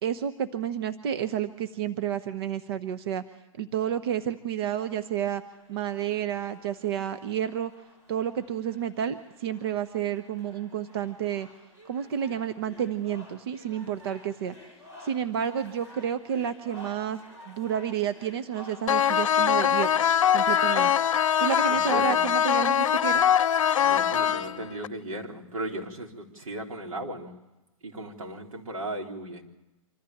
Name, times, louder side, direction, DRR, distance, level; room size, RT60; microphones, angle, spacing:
voice 1, 0.0-3.2 3.6-5.4 5.7-7.7 8.1-11.5 11.8-14.5 15.0-17.2 17.5-20.0 20.3-20.9 21.4-23.2, right 9 dB, 45° right, 10 dB, 1.0 m, -30 dB
sound 1, 5.2-19.4, equal, 20° right, 5.2 m, -52 dB
sound 2, 18.9-24.9, left 9 dB, 70° left, 0.8 m, -23 dB
voice 2, 21.7-22.3 23.8-27.4 27.8-29.4, right 1 dB, 85° right, 0 dB, 4.1 m, -36 dB
25.5 x 14.5 x 8.6 m, 1.0 s
hypercardioid pair, 160°, 17 cm